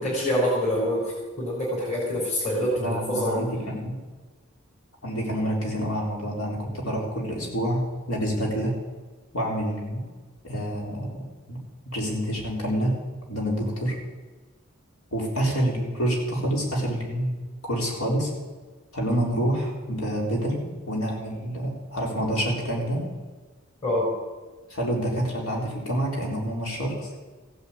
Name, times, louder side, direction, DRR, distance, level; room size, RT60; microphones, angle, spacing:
voice 1, 0.0-3.4 23.8-24.1, equal, 35° left, -6 dB, 4.1 m, -26 dB
voice 2, 2.8-4.0 5.0-8.7 9.3-10.0 10.4-11.1 11.5-11.6 11.9-12.9 13.3-13.9 15.1-17.3 17.7-18.3 18.9-23.0 24.7-27.1, equal, 70° left, -1 dB, 4.1 m, -27 dB
15.5 x 8.3 x 8.7 m, 1.3 s
head